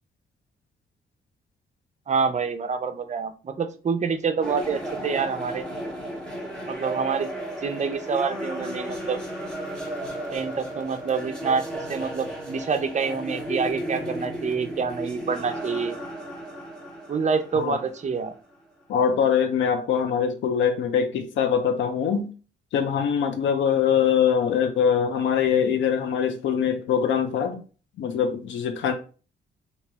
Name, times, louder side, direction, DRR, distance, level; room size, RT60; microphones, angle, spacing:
voice 1, 2.1-5.6 6.7-7.3 7.6-9.2 10.3-16.0 17.1-18.3, right 5 dB, 40° right, 0.5 m, -27 dB
sound 1, 4.4-18.5, right 1 dB, 5° left, 1.0 m, -34 dB
voice 2, 18.9-22.3 22.7-27.6 28.0-28.9, left 7 dB, 85° left, 0.6 m, -23 dB
3.1 x 2.8 x 3.3 m
cardioid pair, 95°, 19 cm